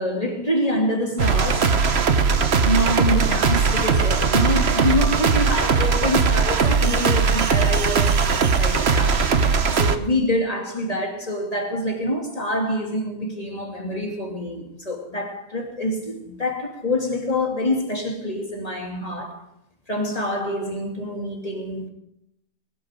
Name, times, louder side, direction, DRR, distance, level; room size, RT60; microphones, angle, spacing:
voice 1, 0.0-1.8 2.6-19.4 19.9-21.9, left 1 dB, 20° left, 2.9 m, -26 dB
sound 1, 1.2-10.0, right 5 dB, 45° right, 1.0 m, -19 dB
22.0 x 13.0 x 3.7 m
omnidirectional pair, 1.9 m